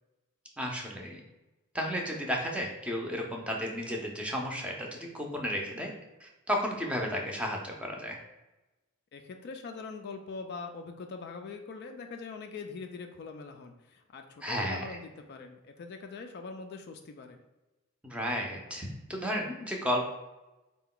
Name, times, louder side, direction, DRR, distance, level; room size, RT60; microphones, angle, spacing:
voice 1, 0.6-1.2 1.7-5.9 6.2-8.2 14.4-15.0 18.0-20.1, equal, 5° right, 0 dB, 0.5 m, -33 dB
voice 2, 9.1-17.4, left 4 dB, 50° left, 5 dB, 0.3 m, -43 dB
4.4 x 2.2 x 3.7 m, 1.0 s
head